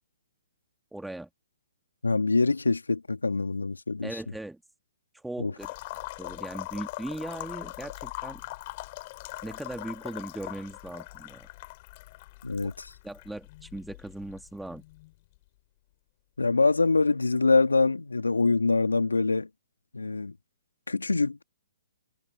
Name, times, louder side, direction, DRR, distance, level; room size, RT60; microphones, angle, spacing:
voice 1, 0.9-1.3 4.0-4.6 5.1-5.7 6.2-8.4 9.4-11.5 12.6-12.7 13.0-14.8, right 1 dB, 5° right, 2.1 m, -39 dB
voice 2, 2.0-4.1 5.4-5.5 12.4-12.9 16.4-19.5 19.9-20.3 20.9-21.4, left 3 dB, 90° left, 2.9 m, -24 dB
sound 1, 5.6-15.4, left 21 dB, 40° left, 3.3 m, -41 dB
hypercardioid pair, 130°, 0 cm